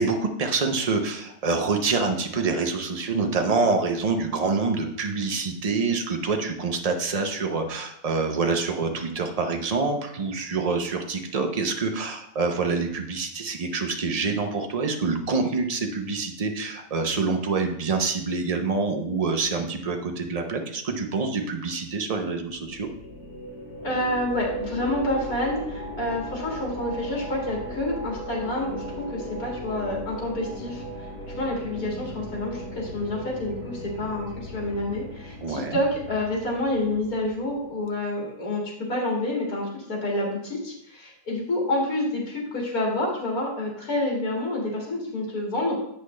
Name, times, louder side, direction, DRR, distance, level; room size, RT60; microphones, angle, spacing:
voice 1, 0.0-22.9 35.4-35.8, right 4 dB, 55° right, 4 dB, 0.4 m, -26 dB
sound 1, 22.4-37.8, equal, 30° left, 3.6 m, -37 dB
voice 2, 23.8-31.1 31.4-45.8, left 1 dB, 65° left, -3 dB, 2.6 m, -28 dB
8.3 x 5.6 x 3.2 m, 0.72 s
omnidirectional pair, 1.7 m